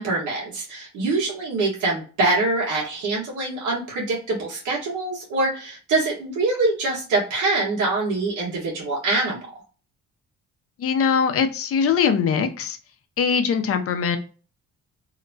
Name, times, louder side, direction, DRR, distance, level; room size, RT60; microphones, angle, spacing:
voice 1, 0.0-9.4, right 2 dB, 85° right, -3 dB, 1.2 m, -24 dB
voice 2, 10.8-12.8 13.2-14.2, left 6 dB, 50° left, 7 dB, 0.6 m, -21 dB
2.8 x 2.1 x 2.5 m, 0.37 s
cardioid pair, 90°, 30 cm